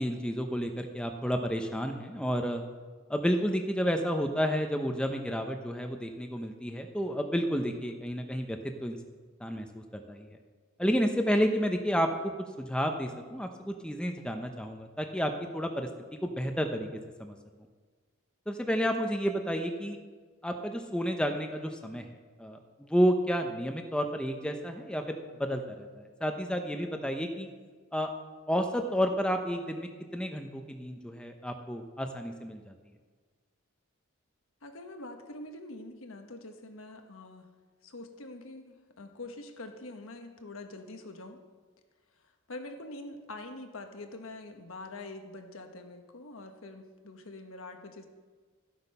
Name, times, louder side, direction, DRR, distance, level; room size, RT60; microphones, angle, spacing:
voice 1, 0.0-2.6 3.1-9.0 9.4-10.4 10.8-12.3 12.6-15.9 16.2-16.9 17.2-17.4 18.5-20.0 20.4-22.1 22.4-27.5 27.9-28.1 28.5-32.7, equal, 5° left, 5 dB, 0.6 m, -31 dB
voice 2, 34.6-37.5 37.8-41.4 42.5-48.1, left 2 dB, 75° left, 5 dB, 1.2 m, -45 dB
13.5 x 8.1 x 5.5 m, 1.5 s
head